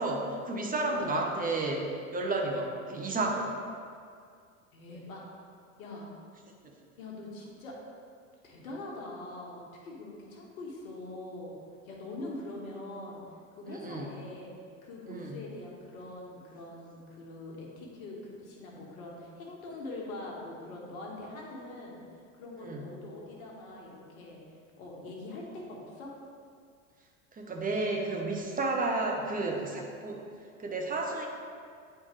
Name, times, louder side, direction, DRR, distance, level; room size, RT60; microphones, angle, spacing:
voice 1, 0.0-3.5 13.7-14.1 15.1-15.4 22.6-22.8 27.4-30.2 30.6-31.3, right 2 dB, 20° right, 1 dB, 1.0 m, -32 dB
voice 2, 4.7-5.2 5.8-6.1 7.0-7.8 8.4-11.5 11.8-13.2 13.5-14.6 14.8-24.4 24.8-26.1, left 2 dB, 80° left, -2 dB, 1.6 m, -43 dB
8.9 x 4.5 x 3.2 m, 2.2 s
hypercardioid pair, 95°, 41 cm